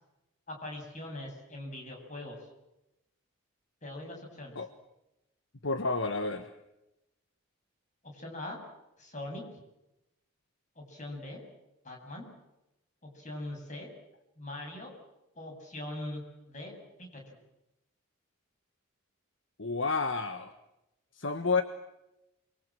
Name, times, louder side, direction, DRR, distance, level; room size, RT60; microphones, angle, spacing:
voice 1, 0.5-2.5 3.8-4.6 8.0-8.6 9.0-9.5 10.8-11.4 11.8-12.3 13.0-13.9 14.4-14.9 15.4-17.4, left 1 dB, 35° left, 2 dB, 7.9 m, -42 dB
voice 2, 5.6-6.5 19.6-20.5 21.1-21.6, left 4 dB, 60° left, 9 dB, 1.4 m, -30 dB
29.0 x 23.5 x 7.7 m, 0.92 s
head